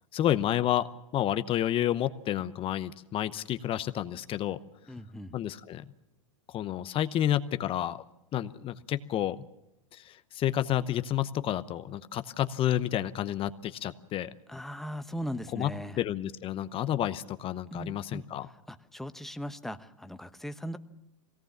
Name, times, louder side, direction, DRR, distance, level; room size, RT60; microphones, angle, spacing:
voice 1, 0.1-0.9 1.1-4.6 5.3-5.8 6.5-8.0 8.3-9.4 9.9-14.3 15.5-15.7 16.0-18.5, left 12 dB, 35° left, 12 dB, 0.8 m, -30 dB
voice 2, 4.9-5.4 14.5-16.0 17.7-18.2 18.7-20.8, equal, ahead, 10 dB, 1.0 m, -39 dB
22.5 x 17.5 x 7.3 m, 0.88 s
hypercardioid pair, 105°, 16 cm